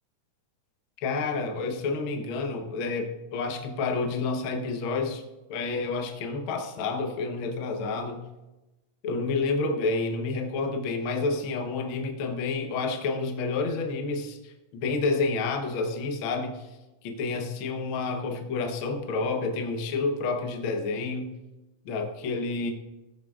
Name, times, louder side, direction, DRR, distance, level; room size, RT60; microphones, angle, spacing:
voice 1, 1.0-5.2 5.5-8.2 9.0-16.7 17.0-21.3 21.8-22.7, left 3 dB, 80° left, 3 dB, 1.1 m, -29 dB
15.5 x 6.6 x 2.4 m, 1.0 s
omnidirectional pair, 3.6 m